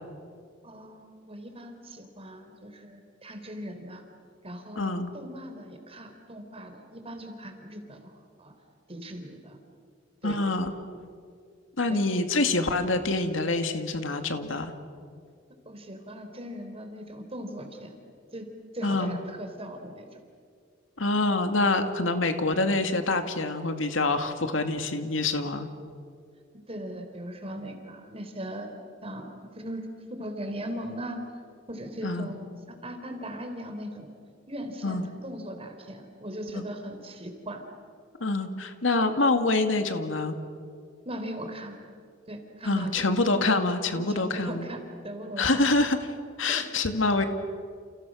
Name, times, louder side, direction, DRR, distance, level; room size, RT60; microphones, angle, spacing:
voice 1, 0.6-4.1 4.4-8.1 8.4-8.5 8.9-9.6 10.2-10.4 11.9-12.0 15.7-17.9 18.3-18.5 18.7-20.1 26.7-28.8 29.0-31.2 31.7-32.5 32.8-34.1 34.5-37.6 41.1-41.8 42.3-43.1 44.0-45.6 46.5-46.7, equal, 30° right, 5 dB, 3.7 m, -39 dB
voice 2, 4.8-5.1 10.2-10.7 11.8-14.7 18.8-19.2 21.0-25.7 32.0-32.3 34.8-35.1 36.5-36.7 38.2-40.4 42.6-44.7 45.4-46.0 46.4-47.2, left 2 dB, 80° left, 7 dB, 2.2 m, -26 dB
30.0 x 29.5 x 6.4 m, 2.2 s
head